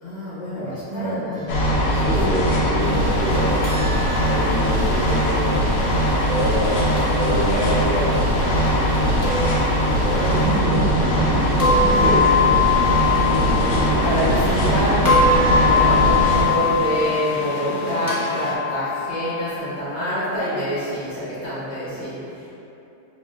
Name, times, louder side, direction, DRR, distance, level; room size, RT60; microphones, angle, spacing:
voice 1, 0.0-1.9 2.3-3.0 10.0-11.6 12.1-12.2 13.2-22.5, equal, 80° left, -11 dB, 1.7 m, -27 dB
voice 2, 0.5-1.3 1.9-3.6 4.3-8.2 10.0-11.2 11.9-12.4, equal, 65° right, -10 dB, 0.6 m, -27 dB
sound 1, 1.5-16.4, equal, 65° left, 0.8 m, -21 dB
sound 2, 2.8-18.6, right 2 dB, 90° right, 1.2 m, -30 dB
sound 3, 3.6-5.7 7.0-8.0 9.2-10.4 11.6-14.7 15.0-19.5, left 5 dB, 20° left, 0.6 m, -23 dB
5.1 x 2.6 x 2.3 m, 2.9 s
omnidirectional pair, 1.7 m